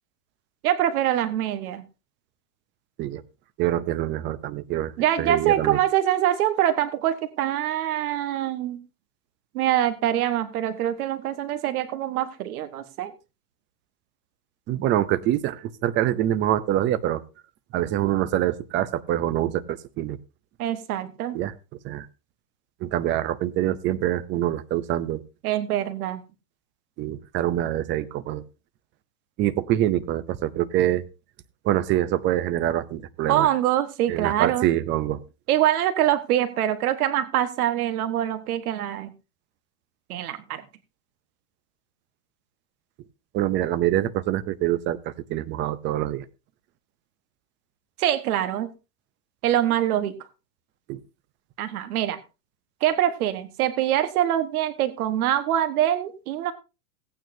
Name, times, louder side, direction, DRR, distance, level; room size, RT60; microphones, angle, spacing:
voice 1, 0.6-1.8 5.0-8.8 9.5-13.1 20.6-21.4 25.4-26.2 33.3-34.7 35.5-39.1 40.1-40.6 48.0-48.7 49.4-50.1 51.6-52.2 52.8-56.5, right 11 dB, 80° right, 10 dB, 1.4 m, -24 dB
voice 2, 3.6-4.9 5.2-5.8 14.7-17.2 17.7-20.2 21.3-21.5 21.8-22.1 22.8-25.2 27.0-28.4 29.4-31.0 31.6-33.5 34.1-35.2 43.3-45.0 45.3-46.2 50.9-51.0, right 13 dB, 25° right, 13 dB, 0.6 m, -25 dB
17.0 x 9.2 x 2.7 m, 0.29 s
supercardioid pair, 150°, 44 cm